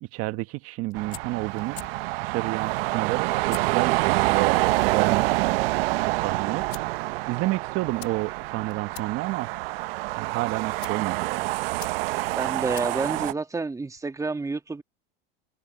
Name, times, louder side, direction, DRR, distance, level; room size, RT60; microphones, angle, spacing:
voice 1, 0.0-5.7 6.0-6.7 7.3-9.5 10.1-11.5, right 19 dB, 50° right, 1.4 m, -30 dB
sound 1, 0.7-14.1, left 18 dB, 75° left, 4.8 m, -50 dB
sound 2, 0.9-13.3, right 21 dB, 70° right, 1.0 m, -27 dB
voice 2, 12.4-14.8, right 3 dB, 10° right, 1.8 m, -29 dB
hypercardioid pair, 105°, 31 cm